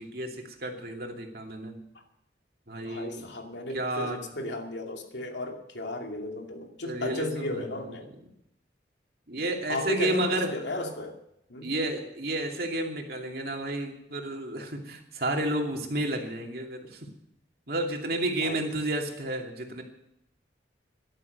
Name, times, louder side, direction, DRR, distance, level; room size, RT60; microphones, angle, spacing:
voice 1, 0.0-1.8 2.7-3.3 3.7-4.2 6.8-7.7 9.3-10.5 11.6-17.1 17.7-19.8, right 1 dB, 55° right, 2 dB, 2.6 m, -31 dB
voice 2, 2.8-8.1 9.7-11.2 11.5-11.7 18.4-18.7, left 1 dB, 80° left, 3 dB, 2.4 m, -34 dB
13.0 x 12.0 x 6.7 m, 0.80 s
head